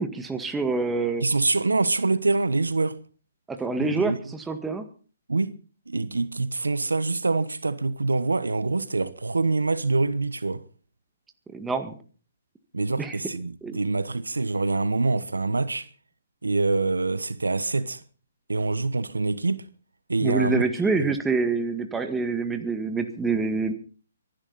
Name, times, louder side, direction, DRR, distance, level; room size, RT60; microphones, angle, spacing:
voice 1, 0.0-1.2 3.5-4.8 11.5-11.9 13.0-13.2 13.6-13.8 20.2-23.7, right 4 dB, 10° right, 1.8 m, -26 dB
voice 2, 1.2-3.0 3.8-4.2 5.3-5.5 5.9-10.6 12.7-15.9 16.4-18.0 18.5-19.6 20.1-20.6 21.0-21.2, right 3 dB, 85° right, 1.1 m, -25 dB
24.0 x 11.5 x 4.1 m
figure-of-eight pair, 135°, 0 cm